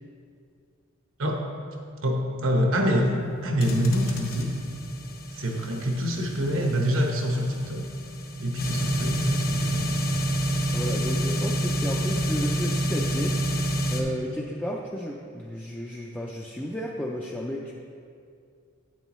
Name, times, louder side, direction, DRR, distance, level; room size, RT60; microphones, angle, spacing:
voice 1, 2.0-3.1 3.4-4.6 5.3-7.9 8.4-9.9, equal, 75° right, 1 dB, 1.1 m, -25 dB
sound 1, 3.6-14.0, equal, 45° left, 0.8 m, -28 dB
voice 2, 10.7-13.4 13.9-17.7, equal, 10° left, -3 dB, 0.4 m, -33 dB
8.9 x 8.0 x 3.1 m, 2.3 s
head